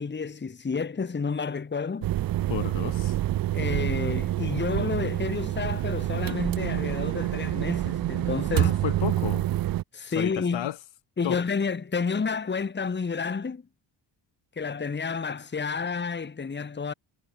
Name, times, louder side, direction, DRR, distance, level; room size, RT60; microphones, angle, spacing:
voice 1, 0.0-2.1 3.5-8.7 9.9-10.7 11.2-13.6 14.6-16.9, left 5 dB, 20° left, 1.1 m, -30 dB
sound 1, 2.0-9.8, right 14 dB, 50° right, 0.5 m, -27 dB
voice 2, 2.5-3.2 8.5-9.5 10.0-10.8 11.2-11.4, left 12 dB, 65° left, 1.0 m, -32 dB
cardioid pair, 70°, 49 cm